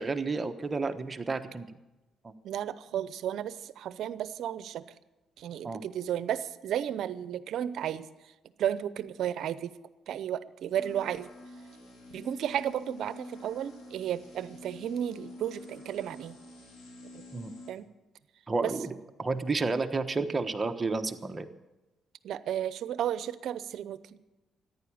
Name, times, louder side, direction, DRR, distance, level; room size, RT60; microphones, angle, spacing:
voice 1, 0.0-1.7 2.2-2.3 5.6-5.8 17.3-17.5 18.5-18.9 19.2-21.5, right 3 dB, 25° right, 7 dB, 1.2 m, -31 dB
voice 2, 2.4-4.9 5.4-8.3 8.6-9.8 10.1-11.3 12.1-16.4 17.1-17.3 17.7-17.9 18.6-18.7 22.2-24.2, right 10 dB, 75° right, 15 dB, 0.7 m, -33 dB
sound 1, 10.7-17.7, left 2 dB, 90° left, 3.8 m, -48 dB
14.5 x 10.5 x 8.7 m, 1.0 s
cardioid pair, 90°, 0 cm